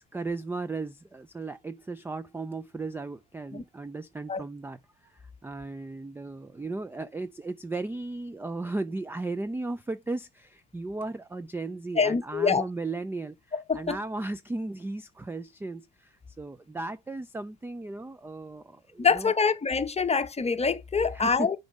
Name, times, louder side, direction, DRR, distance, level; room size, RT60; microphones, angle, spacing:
voice 1, 0.0-19.3 21.1-21.5, right 3 dB, 10° right, 0.3 m, -36 dB
voice 2, 12.0-12.6 13.5-14.0 19.0-21.6, left 5 dB, 20° left, 0.8 m, -25 dB
7.0 x 4.0 x 5.3 m
cardioid pair, 95°, 31 cm